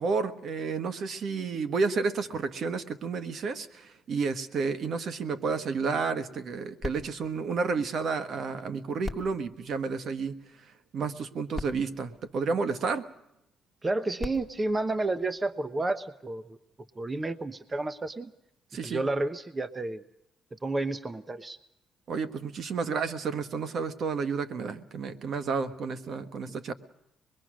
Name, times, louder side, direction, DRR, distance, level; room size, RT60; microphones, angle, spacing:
voice 1, 0.0-10.4 10.9-13.0 18.7-19.0 22.1-26.7, right 4 dB, 60° right, 10 dB, 1.5 m, -31 dB
sound 1, 6.8-8.5 9.0-10.6 11.3-11.4 11.5-13.1 13.9-15.8 16.5-16.6, left 2 dB, 10° left, 2.0 m, -43 dB
voice 2, 13.8-16.6 17.0-18.3 18.8-20.0 20.6-21.6 26.5-26.6, right 2 dB, 25° right, 11 dB, 0.9 m, -31 dB
25.5 x 21.5 x 6.4 m, 0.83 s
cardioid pair, 90°, 0 cm